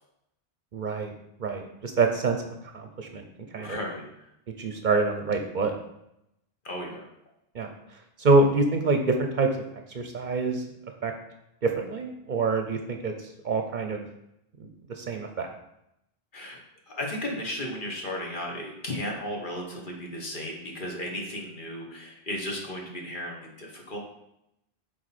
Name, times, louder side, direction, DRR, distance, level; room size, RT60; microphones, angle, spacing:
voice 1, 0.7-1.1 1.4-2.4 2.7-3.2 3.5-3.8 4.6-5.8 7.5-7.7 8.2-9.5 9.9-10.6 11.0-11.1 11.6-14.1 14.6-15.5, right 3 dB, 55° right, 5 dB, 0.7 m, -26 dB
voice 2, 3.6-4.3 6.6-7.1 16.3-16.6 16.9-24.0, left 1 dB, 55° left, -1 dB, 1.5 m, -35 dB
7.6 x 4.0 x 4.2 m, 0.83 s
omnidirectional pair, 1.0 m